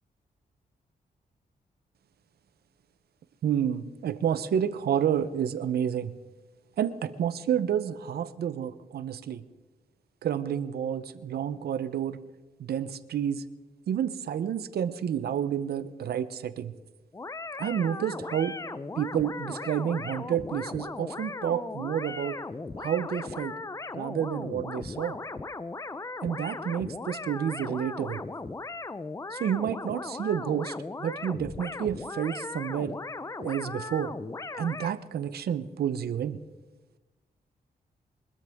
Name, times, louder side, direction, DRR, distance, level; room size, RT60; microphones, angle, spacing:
voice 1, 3.4-6.1 6.8-9.4 10.2-12.2 12.6-13.4 13.9-16.7 17.6-18.6 18.9-22.4 22.8-23.6 23.9-25.2 26.2-28.2 29.3-30.7 31.0-33.0 33.4-34.1 34.5-36.4, right 9 dB, 80° right, 14 dB, 0.7 m, -30 dB
sound 1, 17.1-35.0, left 3 dB, 20° left, 0.5 m, -38 dB
23.5 x 13.0 x 3.6 m, 1.2 s
cardioid pair, 95°, 16 cm